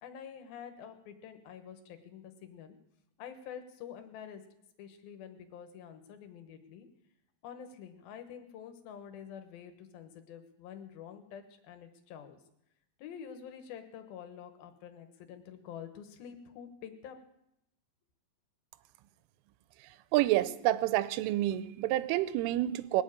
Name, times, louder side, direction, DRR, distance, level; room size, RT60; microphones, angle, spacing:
voice 1, 0.0-2.8 3.2-4.4 4.8-6.9 7.4-12.4 13.0-17.2, left 8 dB, 65° left, 7 dB, 2.6 m, -47 dB
voice 2, 20.1-23.0, right 15 dB, 90° right, 15 dB, 3.2 m, -28 dB
21.0 x 7.3 x 8.7 m, 0.80 s
omnidirectional pair, 5.5 m